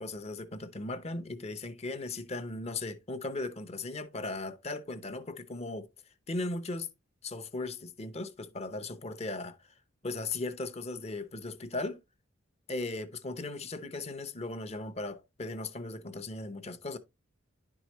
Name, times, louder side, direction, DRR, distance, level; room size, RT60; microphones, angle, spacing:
voice 1, 0.0-6.9 7.2-9.7 10.0-12.0 12.7-17.0, left 2 dB, 30° left, 0.7 m, -37 dB
11.0 x 4.7 x 3.0 m
head